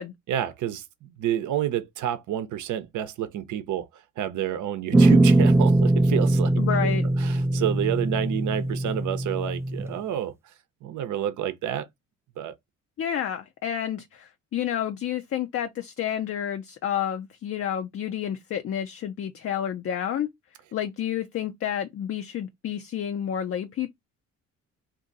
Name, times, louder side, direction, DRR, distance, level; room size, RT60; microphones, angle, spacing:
voice 1, 0.3-3.9 4.2-6.5 7.2-10.3 10.8-11.9 12.4-12.6, right 11 dB, 75° right, 0.8 m, -29 dB
sound 1, 4.9-9.9, right 2 dB, 10° right, 0.3 m, -21 dB
voice 2, 6.6-7.1 13.0-20.3 20.7-23.9, left 9 dB, 50° left, 0.5 m, -30 dB
2.6 x 2.6 x 3.9 m
cardioid pair, 90°, 30 cm